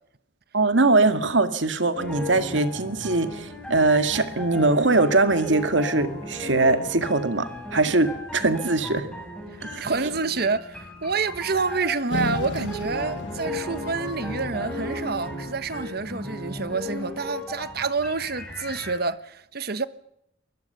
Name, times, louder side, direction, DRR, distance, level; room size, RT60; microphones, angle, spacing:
voice 1, 0.5-9.1 9.6-9.9, right 3 dB, 80° right, 2.0 m, -22 dB
sound 1, 2.0-19.0, left 1 dB, 5° left, 6.5 m, -36 dB
voice 2, 9.8-19.9, right 4 dB, 55° right, 1.3 m, -28 dB
sound 2, 12.1-16.7, left 2 dB, 70° left, 1.3 m, -35 dB
23.0 x 21.0 x 6.9 m
head